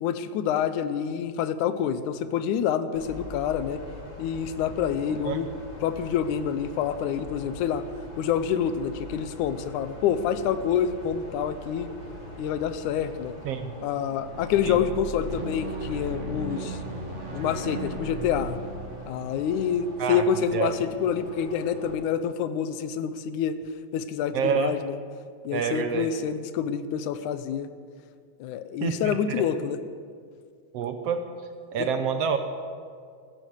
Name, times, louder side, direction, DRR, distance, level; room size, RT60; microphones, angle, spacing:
voice 1, 0.0-3.8 4.2-5.5 5.8-7.8 8.2-11.9 12.4-13.3 13.8-16.8 17.3-18.6 19.1-23.6 23.9-25.0 25.4-27.7 28.4-29.8 31.8-31.9, left 8 dB, 90° left, 12 dB, 2.2 m, -27 dB
sound 1, 2.9-22.0, equal, 35° left, 4.2 m, -43 dB
sound 2, 14.1-20.4, right 1 dB, 35° right, 1.2 m, -36 dB
voice 2, 24.3-24.8 25.5-26.1 28.8-29.4 30.7-31.2 31.7-32.4, right 7 dB, 70° right, 7 dB, 1.6 m, -27 dB
15.0 x 13.0 x 6.5 m, 2.1 s
omnidirectional pair, 3.4 m